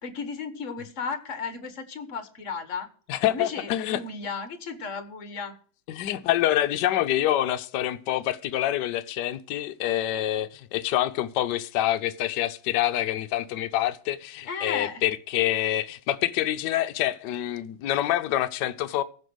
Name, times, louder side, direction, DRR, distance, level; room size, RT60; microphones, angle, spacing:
voice 1, 0.0-2.9 3.3-5.5 14.5-15.0, left 5 dB, 45° left, 1.4 m, -34 dB
voice 2, 3.1-4.0 5.9-19.0, left 13 dB, 65° left, 1.2 m, -26 dB
15.0 x 5.3 x 7.9 m
omnidirectional pair, 2.2 m